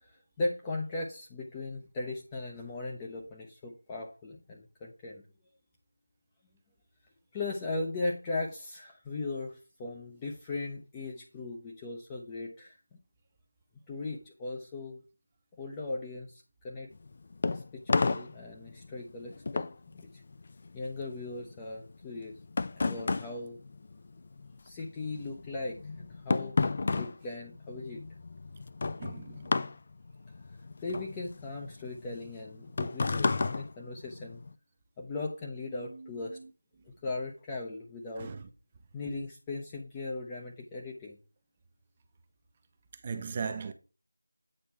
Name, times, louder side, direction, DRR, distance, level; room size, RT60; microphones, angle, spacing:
voice 1, 0.0-5.2 7.3-12.8 13.9-15.0 15.6-16.9 17.5-19.7 19.9-20.2 20.7-22.3 22.7-23.6 24.6-26.6 26.9-28.0 30.8-34.4 35.0-36.4 37.0-38.3 38.9-41.2, left 2 dB, 10° left, 0.7 m, -38 dB
sound 1, 16.9-24.6 24.8-34.5, left 3 dB, 35° left, 0.4 m, -33 dB
voice 2, 29.0-29.6 35.8-36.4 38.2-38.4 43.0-43.7, right 5 dB, 20° right, 0.5 m, -39 dB
8.6 x 3.3 x 5.9 m
figure-of-eight pair, 170°, 0 cm